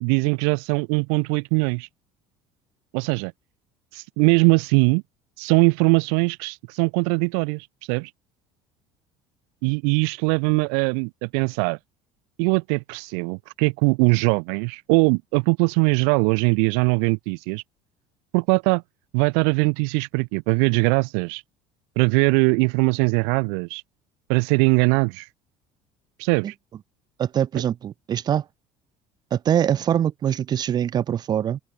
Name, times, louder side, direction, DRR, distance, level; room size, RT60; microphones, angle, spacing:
voice 1, 0.0-1.9 2.9-3.3 3.9-5.0 5.4-8.1 9.6-11.8 12.4-17.6 18.3-18.8 19.1-21.4 22.0-23.8 24.3-25.3 26.2-26.5, right 40 dB or more, 85° right, 0.5 m, -21 dB
voice 2, 27.2-28.4 29.3-31.6, right 9 dB, 35° right, 1.3 m, -23 dB
cardioid pair, 150°, 12 cm